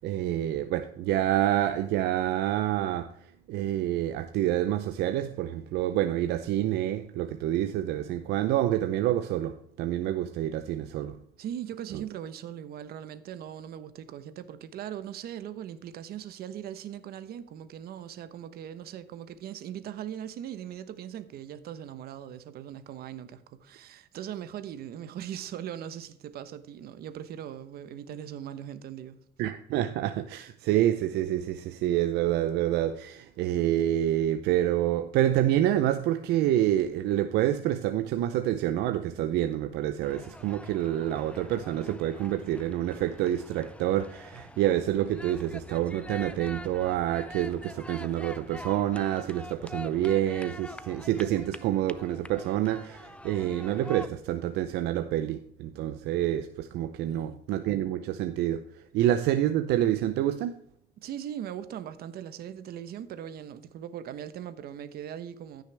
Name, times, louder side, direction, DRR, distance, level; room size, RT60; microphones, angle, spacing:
voice 1, 0.0-3.1 3.5-11.2 11.9-12.0 29.4-60.5, right 12 dB, 85° right, 0.6 m, -27 dB
voice 2, 11.4-29.2 57.1-57.4 61.0-65.6, right 10 dB, 65° right, 1.1 m, -40 dB
sound 1, 40.0-54.1, left 1 dB, 5° left, 0.5 m, -45 dB
15.0 x 6.5 x 3.4 m
cardioid pair, 110°, 17 cm